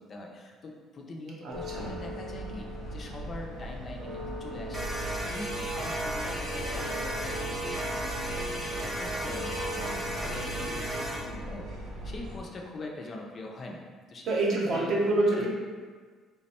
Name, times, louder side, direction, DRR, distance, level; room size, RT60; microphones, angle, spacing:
voice 1, 0.0-13.8 14.1-14.2 14.5-14.9 15.4-15.5, left 2 dB, 30° left, 0 dB, 0.4 m, -43 dB
voice 2, 1.4-1.9 10.6-10.7 14.2-15.5, right 2 dB, 50° right, -3 dB, 0.8 m, -27 dB
sound 1, 1.5-12.4, equal, 90° right, 0.8 m, -39 dB
sound 2, 4.7-11.2, right 1 dB, 15° right, 0.8 m, -34 dB
3.4 x 2.1 x 4.1 m, 1.5 s
cardioid pair, 150°, 0 cm